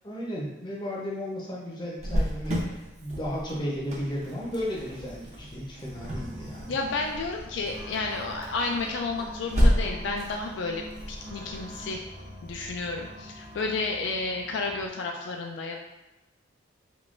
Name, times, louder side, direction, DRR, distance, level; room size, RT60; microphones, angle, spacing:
voice 1, 0.0-6.7, equal, 20° left, -4 dB, 0.6 m, -34 dB
Cricket, 2.0-13.4, equal, 35° right, 0.7 m, -32 dB
sound 1, 5.8-14.9, equal, 65° right, 1.2 m, -44 dB
voice 2, 6.7-12.0 12.4-15.8, left 3 dB, 65° left, 2 dB, 0.3 m, -31 dB
3.6 x 3.3 x 2.5 m, 1.0 s
head